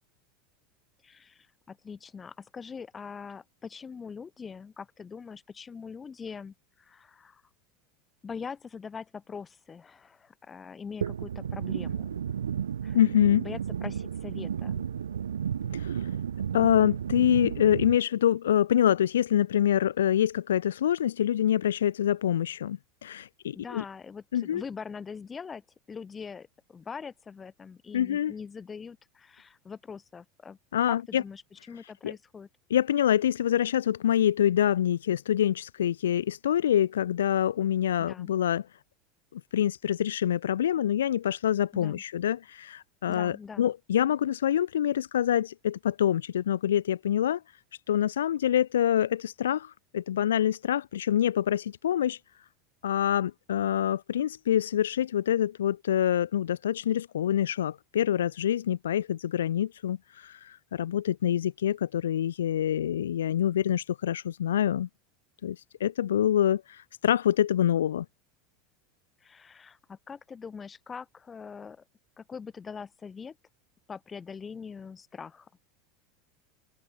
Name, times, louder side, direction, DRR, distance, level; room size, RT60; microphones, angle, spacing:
voice 1, 1.0-7.4 8.2-12.2 12.8-13.0 13.4-14.8 23.5-30.6 30.9-32.5 38.0-38.4 41.7-42.0 43.1-43.7 69.2-71.8 72.2-73.4 73.9-75.5, left 6 dB, 25° left, 3.3 m, -43 dB
sound 1, 11.0-18.0, right 8 dB, 90° right, 0.6 m, -32 dB
voice 2, 12.9-13.4 15.7-16.0 16.5-23.8 24.3-24.6 27.9-28.3 30.7-31.2 32.0-32.1 32.7-38.7 39.3-47.4 47.9-52.2 52.8-64.9 65.4-68.0, left 10 dB, 80° left, 0.8 m, -26 dB
open air
hypercardioid pair, 90°, 0 cm